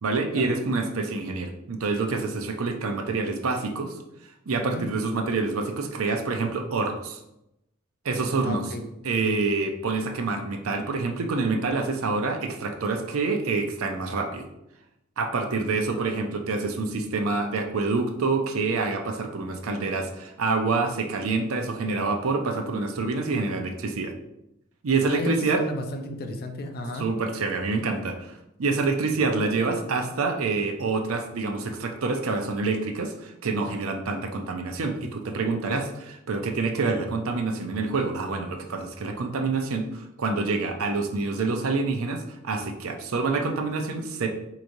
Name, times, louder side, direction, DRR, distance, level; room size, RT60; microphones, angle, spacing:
voice 1, 0.0-4.0 4.5-7.2 8.0-8.7 9.0-14.5 15.2-24.1 24.8-25.6 27.0-44.3, right 3 dB, 75° right, 5 dB, 0.6 m, -27 dB
voice 2, 8.4-8.8 15.6-16.4 25.0-27.1, left 1 dB, 45° left, 5 dB, 0.5 m, -33 dB
4.8 x 3.0 x 2.6 m, 0.86 s
head